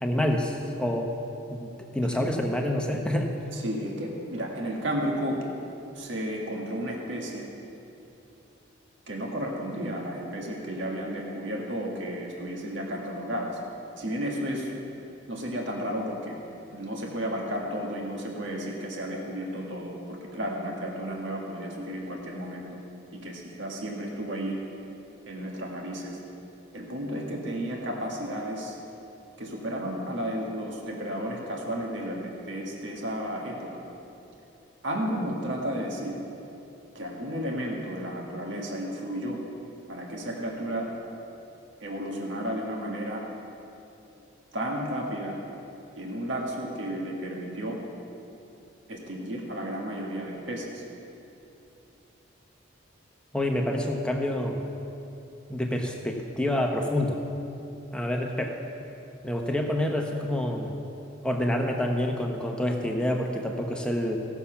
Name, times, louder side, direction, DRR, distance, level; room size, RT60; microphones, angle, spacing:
voice 1, 0.0-1.1 1.5-3.3 53.3-54.6 55.5-57.2 57.9-58.6 59.2-60.7 61.2-64.3, left 1 dB, 5° left, 1 dB, 0.9 m, -27 dB
voice 2, 3.5-5.4 5.9-7.5 9.1-13.6 14.0-14.7 15.3-16.4 16.7-22.7 23.2-24.6 25.3-26.2 26.7-28.8 29.4-33.8 34.8-36.2 37.0-39.4 39.9-40.9 41.8-43.2 44.5-45.4 46.0-47.8 48.9-50.8, equal, 65° right, -1 dB, 1.7 m, -33 dB
16.5 x 7.2 x 5.7 m, 2.8 s
head